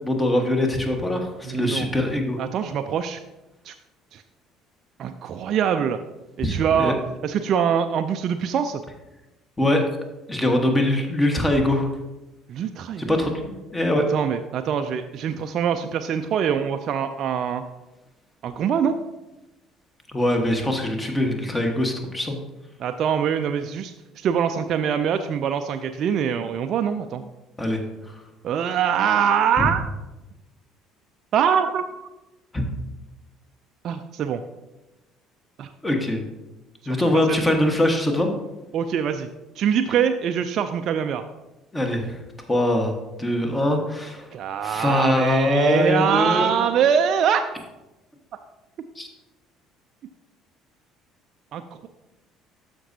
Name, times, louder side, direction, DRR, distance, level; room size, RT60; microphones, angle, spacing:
voice 1, 0.0-2.4 6.4-6.9 9.6-9.9 10.3-11.9 13.0-14.0 20.1-22.4 27.6-28.1 32.5-32.6 35.8-36.2 36.9-38.3 41.7-42.2 42.5-44.3 44.6-46.6 49.0-49.1, left 1 dB, 15° left, 3 dB, 1.4 m, -22 dB
voice 2, 1.5-1.9 2.4-3.2 3.6-3.7 4.1-4.2 5.0-6.0 6.4-7.0 7.2-8.8 12.5-13.2 13.9-17.6 18.4-19.0 22.8-27.2 28.4-29.8 31.3-31.9 33.8-34.4 35.6-35.7 37.1-37.4 38.7-39.3 39.6-41.2 44.3-47.4 51.5-51.9, right 8 dB, 50° right, 7 dB, 0.4 m, -23 dB
13.0 x 5.2 x 2.7 m, 1.0 s
figure-of-eight pair, 55°, 0 cm